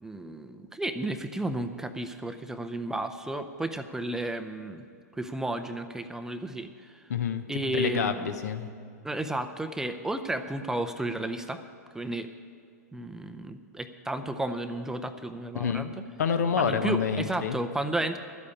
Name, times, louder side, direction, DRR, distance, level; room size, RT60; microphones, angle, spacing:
voice 1, 0.0-4.8 5.1-7.0 7.5-8.3 9.0-11.6 11.9-12.3 12.9-15.9 16.6-18.2, right 1 dB, 5° right, 9 dB, 0.5 m, -33 dB
voice 2, 7.1-8.7 15.5-15.9 16.2-17.6, left 6 dB, 65° left, 9 dB, 0.9 m, -28 dB
12.0 x 8.4 x 8.4 m, 2.2 s
figure-of-eight pair, 105°, 9 cm